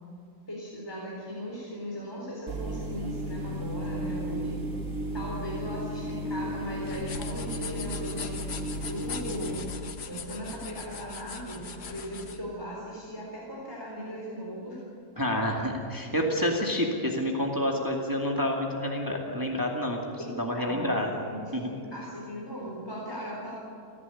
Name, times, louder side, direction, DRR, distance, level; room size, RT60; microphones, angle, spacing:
voice 1, 0.5-4.6 5.1-8.5 8.8-9.7 10.1-14.8 20.2-23.5, equal, 15° left, -4 dB, 3.9 m, -38 dB
sound 1, 2.5-9.6, right 1 dB, 60° right, 2.2 m, -34 dB
sound 2, 6.8-12.4, left 6 dB, 85° left, 1.8 m, -40 dB
voice 2, 15.2-20.0 20.3-21.2 21.5-21.7, left 1 dB, 15° right, 0 dB, 2.2 m, -28 dB
30.0 x 11.0 x 9.9 m, 2.7 s
omnidirectional pair, 1.6 m